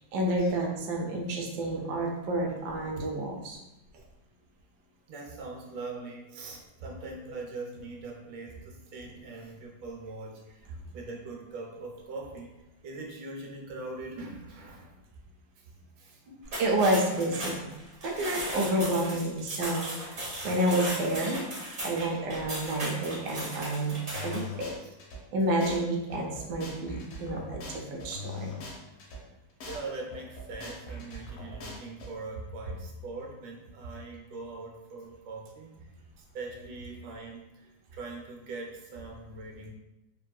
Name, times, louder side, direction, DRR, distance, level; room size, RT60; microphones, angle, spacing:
voice 1, 0.1-3.6 16.6-17.7 18.0-20.2 20.4-21.4 21.8-24.0 24.2-24.7 25.3-28.6, right 1 dB, 75° right, 0 dB, 1.0 m, -29 dB
voice 2, 5.1-14.9 15.6-15.7 16.0-16.4 18.1-18.5 19.1-19.2 20.1-20.8 22.1-22.2 23.8-23.9 24.8-24.9 29.0-29.3 29.7-35.9 36.2-39.7, right 3 dB, 90° right, -1 dB, 1.4 m, -42 dB
sound 1, 16.4-24.5, right 1 dB, 45° right, 0.7 m, -37 dB
sound 2, 24.1-25.2 25.6-25.8 26.1-29.2 29.6-29.8 30.1-32.1, left 2 dB, 70° left, 1.1 m, -41 dB
3.4 x 2.3 x 2.2 m, 0.95 s
omnidirectional pair, 2.0 m